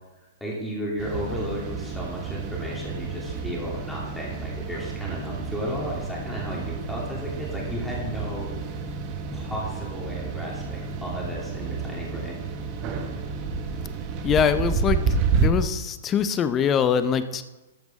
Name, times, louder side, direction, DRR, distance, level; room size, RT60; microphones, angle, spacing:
voice 1, 0.4-8.5 9.3-12.4, equal, 5° left, -4 dB, 2.8 m, -34 dB
sound 1, 1.0-15.5, right 5 dB, 30° right, 1.2 m, -30 dB
voice 2, 14.2-15.0 15.4-17.4, left 7 dB, 20° left, 12 dB, 0.6 m, -23 dB
13.5 x 6.0 x 5.3 m, 1.1 s
hypercardioid pair, 155°, 0 cm